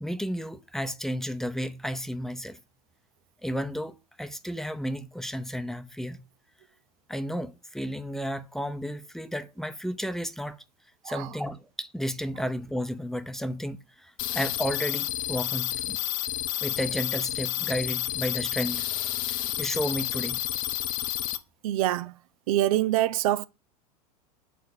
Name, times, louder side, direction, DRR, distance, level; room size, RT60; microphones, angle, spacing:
voice 1, 0.0-2.6 3.4-6.2 7.1-10.6 11.0-16.0 16.6-18.9 19.3-20.4, equal, ahead, 0.8 m, -32 dB
sound 1, 14.2-21.4, left 13 dB, 45° left, 0.9 m, -30 dB
voice 2, 21.6-22.1 22.5-23.5, right 14 dB, 65° right, 0.5 m, -25 dB
9.5 x 3.4 x 4.9 m
hypercardioid pair, 100°, 20 cm